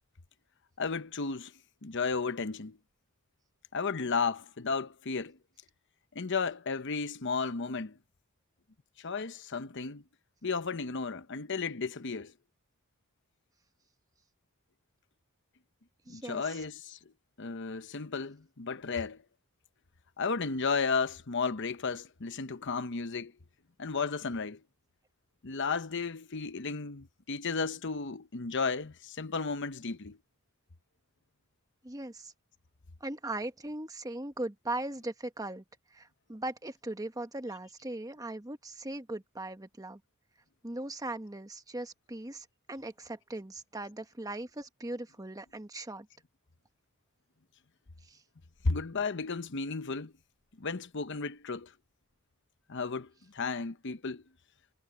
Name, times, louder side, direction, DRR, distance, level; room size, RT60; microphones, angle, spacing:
voice 1, 0.8-1.5 1.8-2.8 3.7-5.4 6.1-8.0 9.0-10.0 10.4-12.3 16.1-17.0 17.4-19.2 20.2-23.3 23.8-24.6 25.4-30.2 48.6-50.1 50.6-51.7 52.7-54.2, left 4 dB, 60° left, 0.9 m, -33 dB
voice 2, 16.1-16.6 31.8-32.3 33.0-35.6 35.9-40.0 40.6-46.1 48.0-48.2, right 2 dB, 15° right, 1.2 m, -39 dB
head